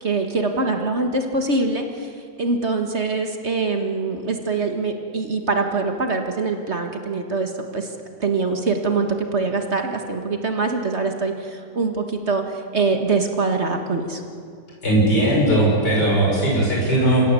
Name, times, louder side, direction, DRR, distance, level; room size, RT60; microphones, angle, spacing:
voice 1, 0.0-7.9 8.2-14.2, right 3 dB, 40° right, 5 dB, 1.8 m, -24 dB
voice 2, 14.8-17.3, right 1 dB, 75° left, -3 dB, 6.1 m, -18 dB
28.0 x 16.0 x 8.3 m, 2.3 s
omnidirectional pair, 1.8 m